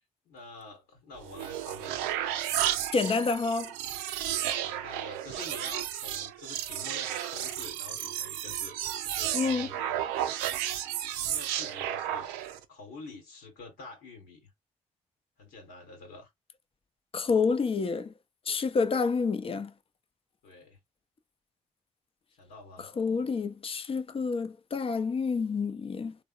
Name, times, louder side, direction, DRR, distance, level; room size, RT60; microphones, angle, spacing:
voice 1, 0.2-2.4 4.4-8.8 9.0-10.0 10.4-10.6 11.3-12.3 12.7-14.5 15.4-16.3 20.4-20.8 22.4-22.9, left 3 dB, 70° left, 1.1 m, -47 dB
sound 1, 1.2-12.6, right 11 dB, 75° right, 0.4 m, -33 dB
voice 2, 2.9-3.7 9.3-9.7 17.1-18.1 18.5-19.7 23.0-26.2, left 4 dB, 35° left, 0.5 m, -28 dB
3.4 x 2.1 x 2.3 m
hypercardioid pair, 40°, 17 cm